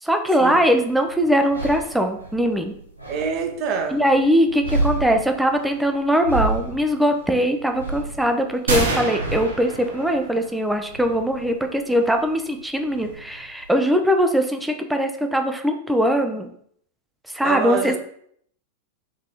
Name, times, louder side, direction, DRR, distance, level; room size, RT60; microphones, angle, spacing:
voice 1, 0.0-2.7 3.9-16.5 17.3-18.0, equal, 5° right, 5 dB, 0.5 m, -21 dB
sound 1, 0.6-13.7, right 2 dB, 90° right, 0.8 m, -32 dB
voice 2, 3.1-4.0 17.4-18.0, right 6 dB, 40° right, 4 dB, 0.8 m, -25 dB
sound 2, 8.7-10.6, right 3 dB, 70° right, 1.0 m, -26 dB
3.8 x 3.6 x 2.9 m, 0.64 s
figure-of-eight pair, 90°, 0 cm